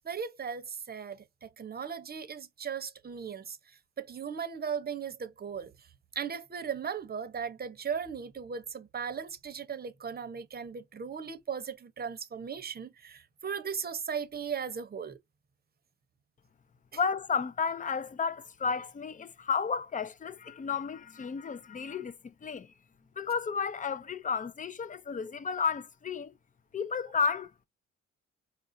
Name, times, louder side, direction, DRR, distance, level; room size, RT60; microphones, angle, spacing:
voice 1, 0.0-5.7 6.2-15.2, right 7 dB, 30° right, 0.7 m, -37 dB
voice 2, 16.9-22.7 23.2-26.3 26.7-27.5, left 6 dB, 25° left, 0.4 m, -32 dB
4.7 x 2.5 x 2.6 m
cardioid pair, 90°, 30 cm